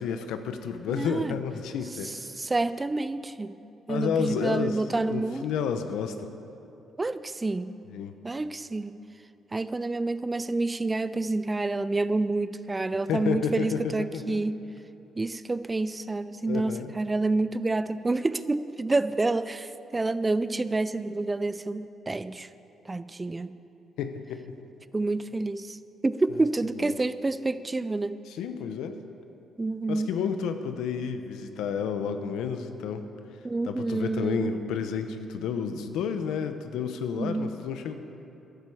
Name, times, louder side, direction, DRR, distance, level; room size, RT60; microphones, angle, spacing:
voice 1, 0.0-2.1 3.9-4.8 5.1-6.3 7.9-8.2 13.1-14.4 16.5-17.0 24.0-24.6 26.8-26.9 28.3-29.0 29.9-33.0 33.7-37.9, left 7 dB, 90° left, 8 dB, 0.8 m, -31 dB
voice 2, 0.9-1.3 2.0-3.5 3.9-5.5 7.0-7.8 8.2-9.0 9.5-14.6 15.2-22.5 22.8-23.6 24.9-25.8 26.0-28.2 29.6-30.1 33.4-34.6 37.1-37.5, right 2 dB, 20° right, 14 dB, 0.4 m, -28 dB
15.0 x 11.5 x 4.8 m, 2.9 s
cardioid pair, 90°, 0 cm